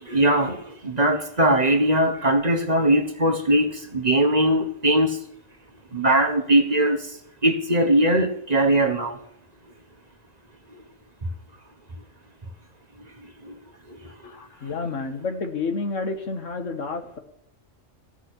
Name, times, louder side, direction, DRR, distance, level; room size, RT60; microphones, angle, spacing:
voice 1, 0.0-5.2 5.9-9.2 10.7-10.8 13.2-13.6 13.9-14.3, right 1 dB, 35° right, 4 dB, 1.3 m, -21 dB
voice 2, 14.2-17.2, left 4 dB, 75° left, 6 dB, 1.8 m, -30 dB
15.5 x 6.1 x 8.3 m, 0.73 s
omnidirectional pair, 1.3 m